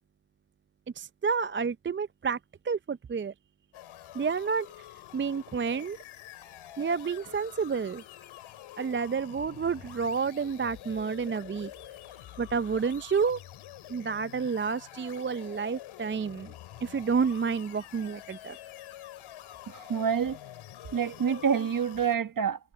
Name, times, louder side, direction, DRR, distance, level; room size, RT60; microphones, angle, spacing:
voice 1, 1.0-2.4 2.6-3.3 4.1-4.8 5.1-6.0 6.8-8.0 8.8-11.7 12.4-13.4 13.9-16.5 16.8-18.6, right 5 dB, 25° right, 0.5 m, -30 dB
sound 1, 3.7-22.2, left 13 dB, 85° left, 2.7 m, -47 dB
voice 2, 19.7-20.4 20.9-22.7, right 7 dB, 45° right, 1.6 m, -27 dB
supercardioid pair, 45°, 47 cm